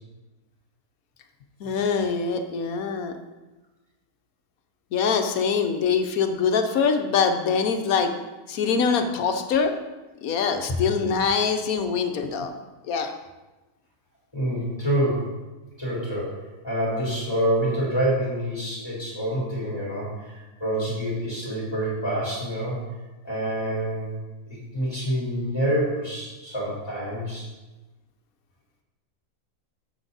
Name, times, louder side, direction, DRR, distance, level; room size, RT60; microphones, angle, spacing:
voice 1, 1.6-3.2 4.9-8.1 8.5-9.7 10.2-12.5 12.9-13.1, left 6 dB, 75° left, 7 dB, 1.3 m, -24 dB
voice 2, 14.3-15.3 15.8-16.4 16.6-22.8 23.2-24.2 24.5-27.4, right 1 dB, 15° left, -6 dB, 3.5 m, -27 dB
9.4 x 7.5 x 4.0 m, 1.1 s
omnidirectional pair, 1.6 m